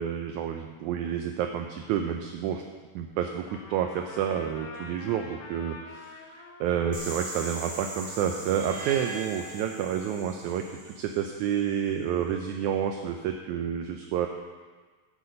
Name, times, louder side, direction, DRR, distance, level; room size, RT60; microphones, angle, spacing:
voice 1, 0.0-2.6 2.9-14.3, right 9 dB, 80° right, 4 dB, 1.8 m, -29 dB
Trumpet, 3.5-10.6, left 3 dB, 70° left, 2.6 m, -48 dB
sound 1, 6.9-11.7, right 1 dB, 20° right, 1.9 m, -42 dB
sound 2, 8.4-10.6, right 4 dB, 65° right, 1.5 m, -42 dB
11.0 x 8.2 x 5.2 m, 1.4 s
omnidirectional pair, 3.9 m